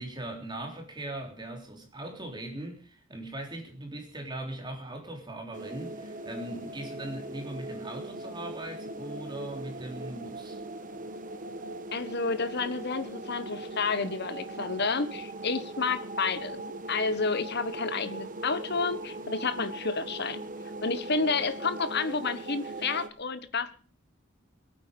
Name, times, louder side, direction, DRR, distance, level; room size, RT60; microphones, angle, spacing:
voice 1, 0.0-10.6, right 1 dB, 20° right, 3 dB, 3.5 m, -40 dB
sound 1, 5.5-23.1, right 2 dB, 40° right, 1.2 m, -40 dB
voice 2, 11.9-20.4 20.8-23.8, left 4 dB, 50° left, 12 dB, 1.3 m, -30 dB
22.0 x 9.1 x 5.3 m, 0.39 s
head